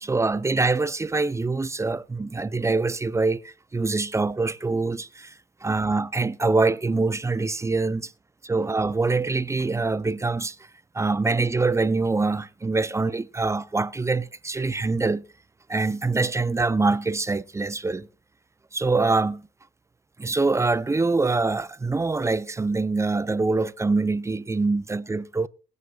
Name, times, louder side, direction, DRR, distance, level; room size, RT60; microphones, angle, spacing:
voice 1, 0.0-5.3 5.6-8.1 8.4-10.6 10.9-15.2 15.7-18.1 18.7-19.4 20.2-25.5, right 3 dB, 15° right, 0.4 m, -24 dB
21.0 x 9.4 x 2.3 m
cardioid pair, 90°, 20 cm